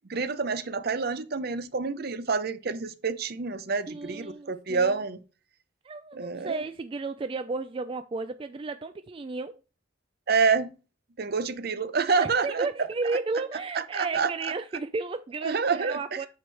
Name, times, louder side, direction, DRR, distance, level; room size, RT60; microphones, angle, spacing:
voice 1, 0.1-5.2 6.1-6.6 10.3-10.7 11.2-12.7 13.8-14.5 15.4-16.0, right 5 dB, 50° right, 0.6 m, -27 dB
voice 2, 3.9-5.0 5.8-9.6 12.2-16.3, right 3 dB, 30° right, 0.3 m, -33 dB
9.2 x 6.2 x 3.3 m
head